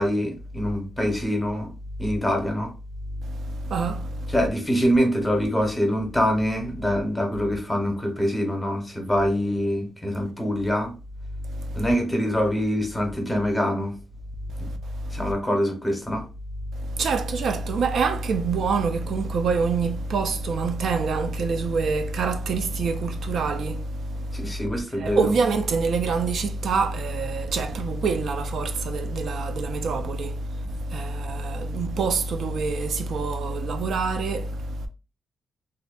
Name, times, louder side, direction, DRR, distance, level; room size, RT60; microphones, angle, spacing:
voice 1, 0.0-1.7 2.0-2.7 4.3-10.9 11.7-14.0 14.6-14.7 15.1-16.3 24.3-25.3, equal, 10° left, 0.7 m, -24 dB
voice 2, 3.2-4.3 11.6-11.9 14.6-14.7 15.0-15.3 16.8-24.5 25.0-34.9, right 4 dB, 70° right, 0.3 m, -26 dB
2.6 x 2.1 x 2.3 m
cardioid pair, 125°, 0 cm